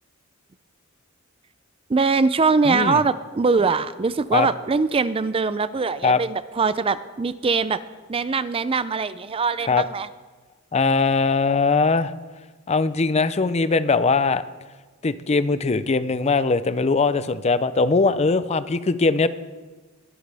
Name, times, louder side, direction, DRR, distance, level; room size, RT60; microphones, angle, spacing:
voice 1, 1.9-7.8 8.1-10.1, right 4 dB, 25° right, 14 dB, 0.4 m, -22 dB
voice 2, 2.6-3.0 4.3-4.5 6.0-6.2 9.7-9.8 10.7-12.1 12.7-14.4 15.0-19.3, left 4 dB, 30° left, 14 dB, 0.5 m, -20 dB
21.5 x 11.5 x 3.4 m, 1.3 s
head